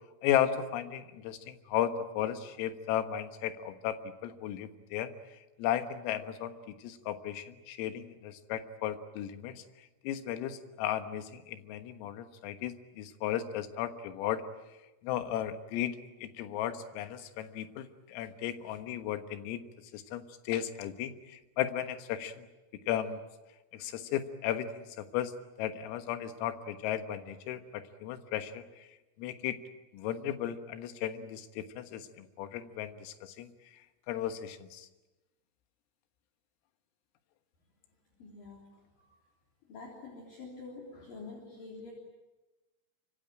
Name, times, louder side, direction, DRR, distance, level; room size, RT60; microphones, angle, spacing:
voice 1, 0.2-5.1 5.6-9.6 10.0-14.4 15.0-19.6 19.9-22.5 22.9-23.2 23.7-28.9 29.2-29.6 29.9-33.5 34.1-34.9, left 11 dB, 80° left, 8 dB, 4.1 m, -35 dB
voice 2, 38.2-38.7 39.7-41.9, left 3 dB, 45° left, -1 dB, 4.7 m, -46 dB
25.0 x 25.0 x 8.8 m, 1.1 s
omnidirectional pair, 6.0 m